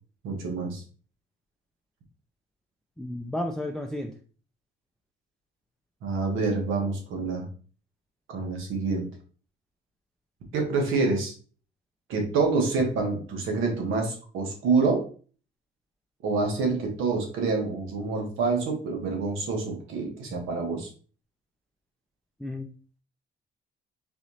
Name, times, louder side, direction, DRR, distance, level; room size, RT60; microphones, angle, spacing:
voice 1, 0.2-0.8 6.0-7.5 8.3-9.1 10.5-11.3 12.1-15.1 16.2-20.9, right 4 dB, 90° right, 2 dB, 1.1 m, -27 dB
voice 2, 3.0-4.1 22.4-22.7, left 1 dB, ahead, 4 dB, 0.4 m, -32 dB
4.1 x 3.0 x 2.7 m, 0.40 s
cardioid pair, 90°, 20 cm